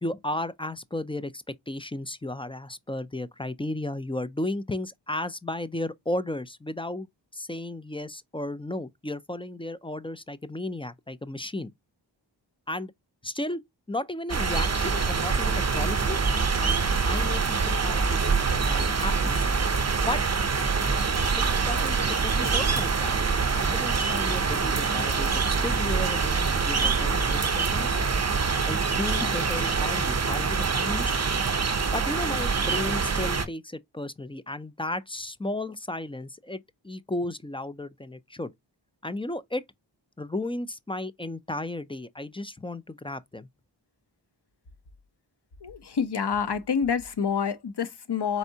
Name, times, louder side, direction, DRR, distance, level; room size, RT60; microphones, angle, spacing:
voice 1, 0.0-11.7 12.7-12.9 13.2-13.6 13.9-16.2 16.6-16.8 17.1-19.5 20.0-20.2 21.4-28.0 28.7-31.2 31.9-36.6 36.8-38.5 39.0-39.7 40.2-43.5, left 1 dB, 15° left, 0.3 m, -34 dB
sound 1, 14.3-33.5, right 5 dB, 35° right, 0.6 m, -25 dB
voice 2, 45.6-48.4, left 6 dB, 60° left, 0.7 m, -27 dB
4.3 x 3.5 x 2.7 m
wide cardioid pair, 55°, 46 cm